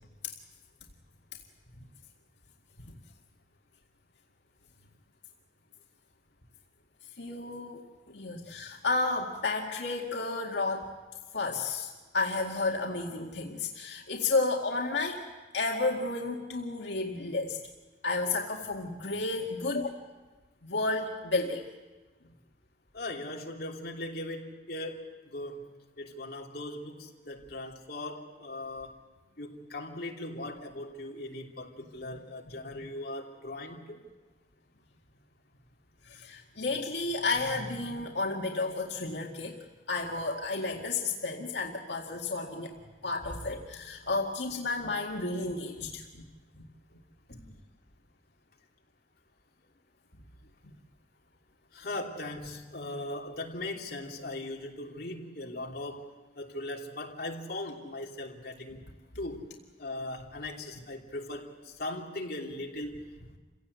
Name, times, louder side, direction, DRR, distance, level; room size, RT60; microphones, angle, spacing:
voice 1, 7.2-7.8 8.1-10.9 11.3-15.2 15.5-17.6 18.0-19.9 20.6-21.6 32.7-32.8 36.0-39.6 39.9-42.7 43.0-46.2, left 3 dB, 85° left, 0 dB, 2.0 m, -32 dB
voice 2, 22.9-25.7 26.0-29.0 29.4-34.0 47.3-47.5 51.7-58.8 59.1-59.5 59.8-63.4, left 1 dB, 60° left, -1 dB, 3.0 m, -39 dB
28.0 x 17.0 x 8.1 m, 1.3 s
head